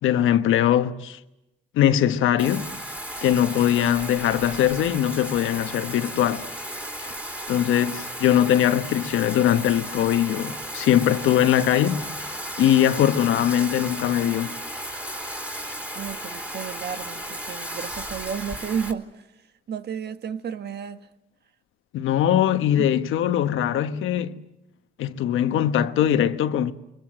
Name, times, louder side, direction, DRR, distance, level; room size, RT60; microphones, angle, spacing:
voice 1, 0.0-1.2 1.7-2.7 3.2-6.5 7.5-12.3 12.6-14.6 21.9-24.4 25.0-26.7, left 11 dB, 80° left, 1.3 m, -21 dB
Bathtub (filling or washing), 2.4-18.9, equal, 5° right, 3.9 m, -35 dB
voice 2, 15.9-19.3 19.7-21.1 22.8-22.9, right 7 dB, 55° right, 1.4 m, -32 dB
28.5 x 23.0 x 7.9 m
cardioid pair, 90°, 20 cm